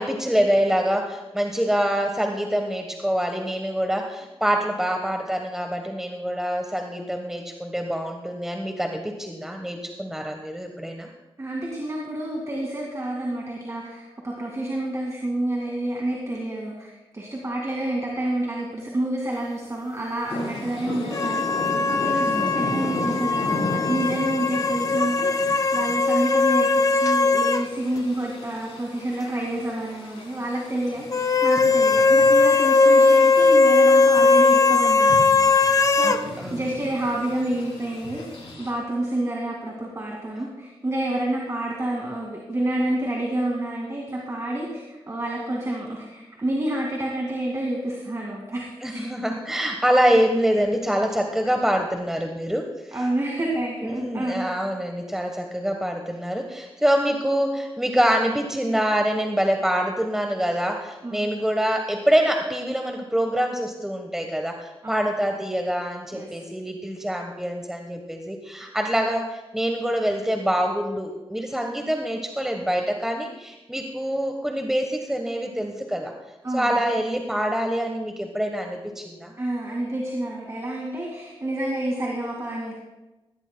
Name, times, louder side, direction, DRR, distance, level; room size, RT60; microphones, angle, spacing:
voice 1, 0.0-11.1 22.2-22.5 36.0-36.6 48.8-52.7 53.8-76.1 76.5-79.3, equal, 5° right, 3 dB, 1.1 m, -25 dB
voice 2, 11.4-38.2 38.6-49.0 52.9-54.5 61.0-61.3 64.8-65.1 66.1-66.4 76.4-76.8 79.4-82.7, right 1 dB, 30° right, -2 dB, 2.1 m, -29 dB
sound 1, 20.3-38.7, left 2 dB, 70° left, 3.8 m, -36 dB
sound 2, 21.1-27.7 28.0-28.1 31.1-36.2, left 3 dB, 35° left, 0.6 m, -19 dB
17.0 x 16.5 x 2.2 m, 1.1 s
wide cardioid pair, 105°, 10 cm